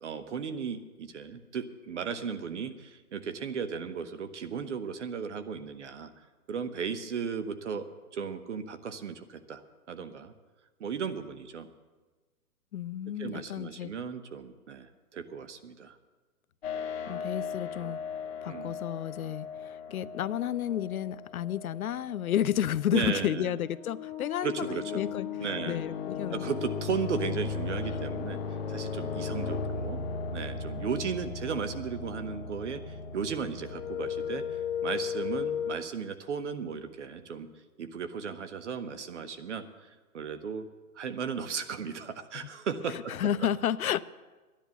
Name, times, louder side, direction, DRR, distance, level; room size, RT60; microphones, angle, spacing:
voice 1, 0.0-6.1 6.5-7.9 8.1-9.6 9.9-10.3 10.8-11.7 13.2-16.0 18.5-18.8 22.9-23.5 24.4-25.0 25.4-25.8 26.3-28.4 28.7-30.0 30.3-37.5 37.8-39.6 40.1-40.7 40.9-43.1, right 6 dB, 50° right, 10 dB, 1.0 m, -35 dB
voice 2, 12.7-13.9 17.1-18.0 18.4-25.3 25.7-26.4 42.3-42.5 42.9-44.0, left 10 dB, 65° left, 16 dB, 0.5 m, -31 dB
sound 1, 16.6-22.5 23.7-35.7, left 6 dB, 40° left, 0.9 m, -36 dB
12.5 x 10.5 x 7.0 m, 1.3 s
hypercardioid pair, 165°, 46 cm